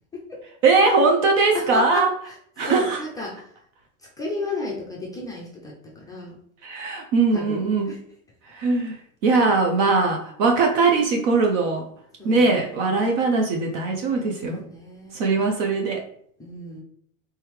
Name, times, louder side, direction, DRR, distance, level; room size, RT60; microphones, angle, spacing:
voice 1, 0.6-2.1 2.6-3.0 6.6-7.9 8.5-11.9 12.2-14.6 15.1-16.0, right 3 dB, 55° right, 2 dB, 0.7 m, -21 dB
voice 2, 1.5-2.3 2.6-3.4 4.2-6.4 7.3-8.0 12.2-12.5 14.2-15.2 16.4-16.8, left 2 dB, 10° left, -4 dB, 0.4 m, -33 dB
3.4 x 3.2 x 3.1 m, 0.65 s
supercardioid pair, 125°, 45 cm